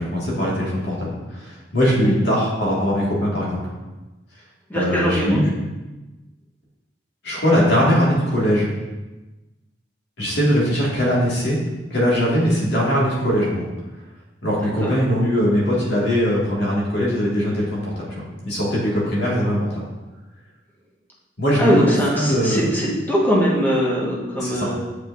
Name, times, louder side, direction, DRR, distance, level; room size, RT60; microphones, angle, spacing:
voice 1, 0.0-3.6 4.7-5.5 7.2-8.7 10.2-11.6 11.9-13.7 14.4-19.9 21.4-22.6 24.4-24.7, equal, 70° left, -5 dB, 1.9 m, -21 dB
voice 2, 4.7-5.4 14.8-14.9 21.6-24.8, equal, 10° left, -5 dB, 1.3 m, -21 dB
7.5 x 5.0 x 2.6 m, 1.1 s
head